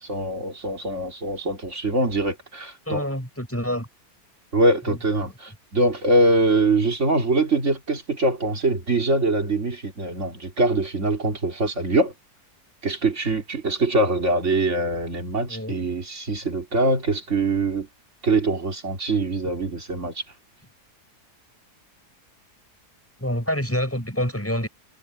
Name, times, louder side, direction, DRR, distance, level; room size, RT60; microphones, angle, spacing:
voice 1, 0.0-3.0 4.5-12.1 12.8-17.9 18.2-20.2, right 2 dB, 45° right, 3.6 m, -23 dB
voice 2, 2.9-3.9 4.9-5.3 15.5-15.7 23.2-24.7, equal, 10° left, 6.0 m, -27 dB
omnidirectional pair, 1.7 m